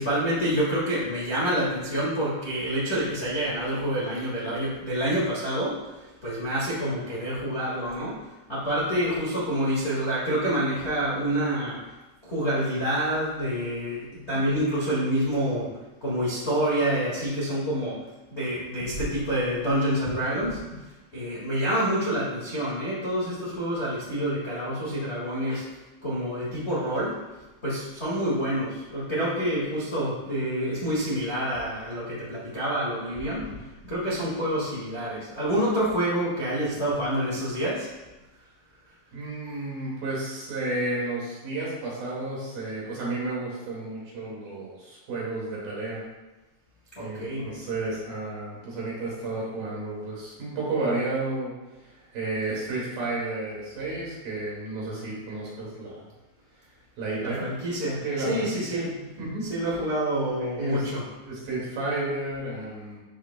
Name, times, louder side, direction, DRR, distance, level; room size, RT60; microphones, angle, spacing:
voice 1, 0.0-8.2 8.5-11.8 12.2-15.7 16.0-18.0 18.3-20.8 21.1-25.6 26.0-27.1 27.6-33.5 33.8-37.9 46.9-47.5 57.2-58.9 59.5-61.0, right 1 dB, 50° left, -8 dB, 0.7 m, -27 dB
voice 2, 39.1-46.0 47.0-51.5 51.9-56.0 57.0-57.5 58.0-58.8 59.2-59.4 60.4-60.8 61.3-63.0, right 2 dB, 60° right, -5 dB, 3.9 m, -32 dB
13.0 x 5.6 x 2.3 m, 1.1 s
omnidirectional pair, 4.8 m